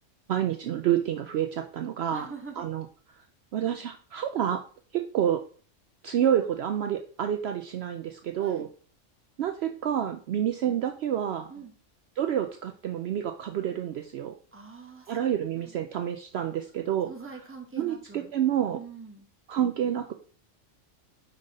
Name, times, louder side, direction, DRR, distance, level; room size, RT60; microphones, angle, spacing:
voice 1, 0.3-2.3 2.6-2.8 3.5-4.6 4.9-5.4 6.0-8.7 9.4-11.5 12.2-14.4 15.1-17.1 17.8-18.8 19.5-20.1, right 10 dB, 65° right, 6 dB, 0.7 m, -28 dB
voice 2, 2.1-2.7 8.3-8.7 11.5-11.7 14.5-15.2 15.5-15.8 17.1-18.3 18.7-19.3, right 4 dB, 10° right, 1 dB, 1.1 m, -44 dB
5.3 x 4.1 x 5.2 m, 0.42 s
omnidirectional pair, 1.3 m